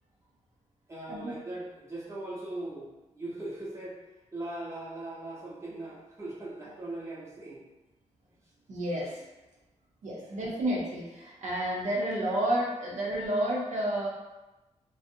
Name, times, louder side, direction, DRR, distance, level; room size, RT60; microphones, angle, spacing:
voice 1, 0.9-4.0 4.3-7.6, right 2 dB, 20° right, -6 dB, 0.7 m, -39 dB
voice 2, 8.7-9.2 10.0-14.1, right 1 dB, 75° right, -4 dB, 0.6 m, -30 dB
2.5 x 2.0 x 2.6 m, 1.0 s
wide cardioid pair, 110°, 12 cm